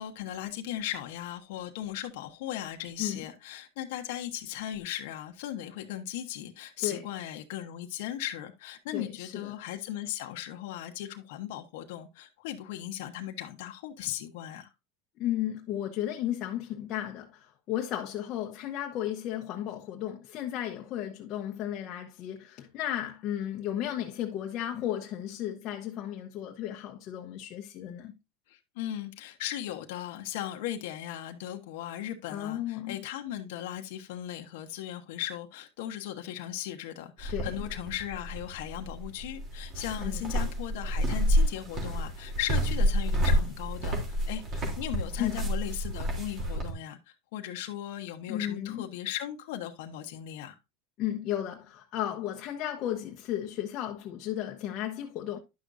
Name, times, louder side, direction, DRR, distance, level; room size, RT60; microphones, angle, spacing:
voice 1, 0.0-14.7 28.5-50.5, left 12 dB, 70° left, 1.1 m, -37 dB
voice 2, 8.9-9.5 15.2-28.1 32.3-33.0 37.3-37.5 40.0-40.3 45.2-45.5 48.3-48.8 51.0-55.4, left 11 dB, 40° left, 1.0 m, -34 dB
sound 1, 37.2-46.7, equal, 30° right, 3.1 m, -29 dB
10.5 x 6.3 x 2.6 m
supercardioid pair, 135°, 0 cm